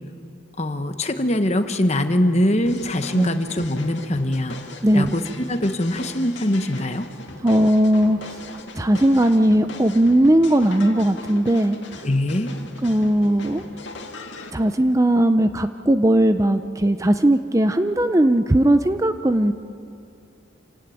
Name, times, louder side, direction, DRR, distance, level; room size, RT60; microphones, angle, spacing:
voice 1, 0.6-4.6 4.9-5.2 5.5-7.1 12.0-12.5, left 1 dB, 30° left, 8 dB, 1.2 m, -22 dB
sound 1, 2.7-14.5, left 2 dB, 60° left, 2.2 m, -39 dB
voice 2, 7.4-8.4 8.8-12.1 12.8-13.7 14.5-19.5, right 1 dB, 15° right, 9 dB, 0.5 m, -18 dB
27.0 x 17.0 x 9.2 m, 2.6 s
head